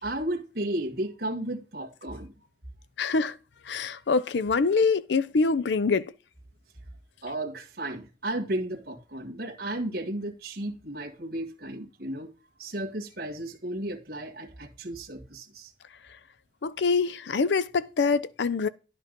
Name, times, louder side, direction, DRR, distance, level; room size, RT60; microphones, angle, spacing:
voice 1, 0.0-2.5 7.2-12.3 12.6-15.7, right 1 dB, 60° right, 1.6 m, -34 dB
voice 2, 3.0-3.4 3.7-6.0 16.6-18.7, left 4 dB, 75° left, 0.5 m, -25 dB
10.5 x 4.8 x 5.1 m
head